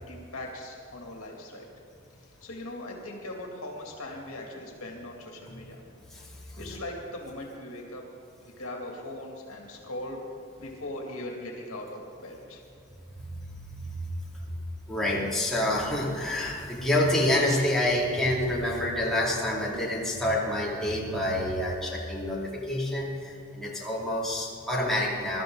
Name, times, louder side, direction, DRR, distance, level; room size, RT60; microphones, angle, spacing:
voice 1, 0.0-1.7 2.2-5.8 6.6-8.0 8.4-10.3 10.6-12.6, left 1 dB, 70° left, 0 dB, 2.5 m, -40 dB
voice 2, 14.9-25.4, left 1 dB, ahead, -6 dB, 2.7 m, -27 dB
22.5 x 13.0 x 3.9 m, 2.4 s
head